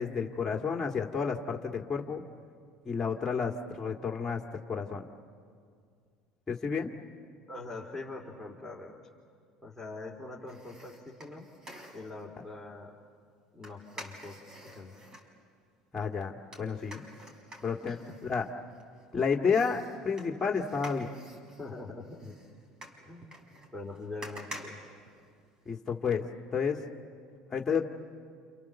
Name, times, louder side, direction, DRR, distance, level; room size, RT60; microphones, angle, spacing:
voice 1, 0.0-2.2 2.9-4.4 4.7-5.0 6.5-6.9 15.9-17.0 17.6-18.0 18.3-18.4 19.1-21.1 25.7-26.3 26.5-26.8 27.5-27.8, left 5 dB, 20° left, 0 dB, 2.1 m, -30 dB
voice 2, 7.5-9.0 9.6-11.5 11.9-12.9 13.5-14.4 14.7-14.9 17.8-18.0 21.6-22.4 23.0-24.8, left 2 dB, ahead, -5 dB, 3.7 m, -43 dB
sound 1, 10.5-12.3 13.6-15.3 16.5-19.0 19.5-25.7 26.1-26.2, right 1 dB, 30° right, 6.3 m, -49 dB
29.0 x 28.5 x 7.2 m, 2.2 s
supercardioid pair, 85°, 2 cm